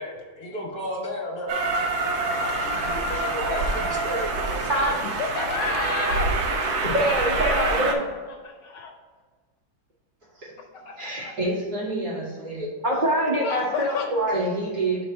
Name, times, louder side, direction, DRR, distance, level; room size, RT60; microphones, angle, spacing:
voice 1, 0.0-1.6 2.6-4.9, equal, 50° left, -3 dB, 1.6 m, -33 dB
Train, 1.5-7.9, right 3 dB, 70° right, 1.5 m, -26 dB
voice 2, 5.2-6.3 7.5-7.9 8.4-8.9 10.8-11.3 13.3-14.2, left 4 dB, 70° left, 2 dB, 1.3 m, -31 dB
voice 3, 6.8-8.0 12.8-14.4, equal, 35° right, -5 dB, 0.8 m, -24 dB
voice 4, 10.9-12.7 14.3-15.0, right 2 dB, 50° right, -7 dB, 2.7 m, -29 dB
5.2 x 4.0 x 5.7 m, 1.5 s
omnidirectional pair, 2.2 m